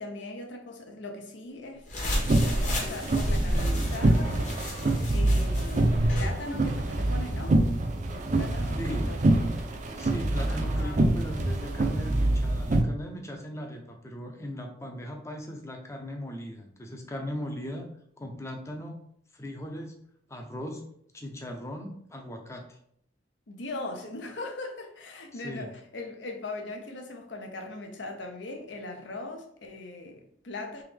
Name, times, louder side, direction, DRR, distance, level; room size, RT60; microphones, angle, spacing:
voice 1, 0.0-4.6 5.1-7.6 7.9-9.2 10.5-11.0 23.5-30.8, left 2 dB, 75° left, 0.7 m, -40 dB
sound 1, 1.9-6.3, equal, 40° left, 1.0 m, -32 dB
sound 2, 2.2-12.8, right 1 dB, 40° right, 0.4 m, -26 dB
voice 2, 8.8-9.1 9.9-17.9 18.2-19.0 19.3-19.9 20.3-20.8 21.1-22.8 25.3-25.7, equal, 15° left, 0.5 m, -38 dB
3.5 x 3.0 x 3.4 m
head